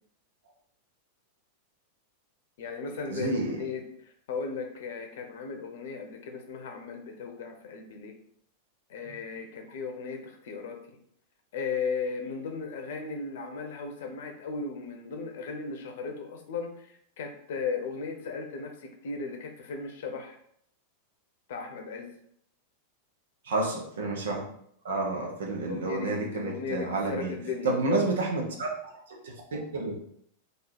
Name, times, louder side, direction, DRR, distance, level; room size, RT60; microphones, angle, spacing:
voice 1, 2.6-8.1 8.9-10.8 11.5-20.4 21.5-22.1 25.7-28.1, left 5 dB, 55° left, 4 dB, 0.8 m, -36 dB
voice 2, 3.1-3.7 23.4-24.4 24.8-27.3 27.6-28.7 29.1-29.9, right 3 dB, 65° right, 0 dB, 1.1 m, -30 dB
3.8 x 2.7 x 4.6 m, 0.67 s
figure-of-eight pair, 90°, 0 cm